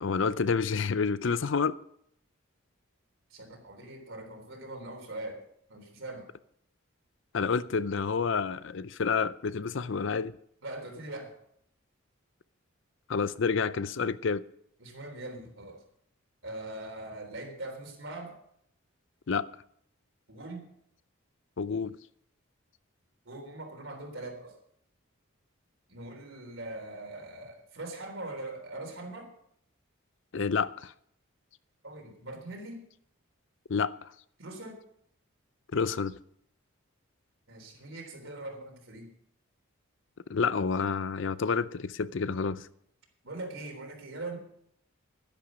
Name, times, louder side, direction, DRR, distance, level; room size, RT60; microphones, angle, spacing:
voice 1, 0.0-1.8 7.3-10.4 13.1-14.4 19.3-19.5 21.6-22.0 30.3-30.9 33.7-34.1 35.7-36.1 40.3-42.7, left 5 dB, 60° left, 0.5 m, -29 dB
voice 2, 3.3-6.3 10.6-11.4 14.8-15.8 16.4-18.4 20.3-20.7 23.3-24.6 25.9-29.3 31.8-32.8 34.4-34.8 37.5-39.1 43.2-44.4, right 2 dB, 65° right, 3.6 m, -41 dB
11.5 x 10.5 x 6.3 m
head